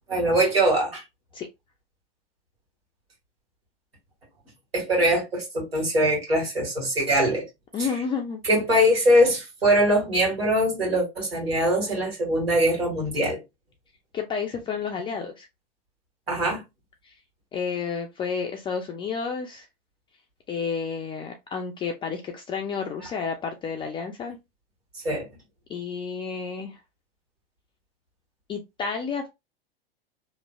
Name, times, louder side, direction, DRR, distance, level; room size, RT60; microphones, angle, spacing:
voice 1, 0.1-1.0 4.7-7.4 8.4-13.4 16.3-16.6 25.0-25.3, equal, 90° right, 1.9 m, -22 dB
voice 2, 7.7-8.4 14.1-15.5 17.0-17.1 17.5-19.7 20.5-24.4 25.7-26.8 28.5-29.3, left 5 dB, 15° left, 0.4 m, -31 dB
3.1 x 2.5 x 2.2 m
hypercardioid pair, 95°, 29 cm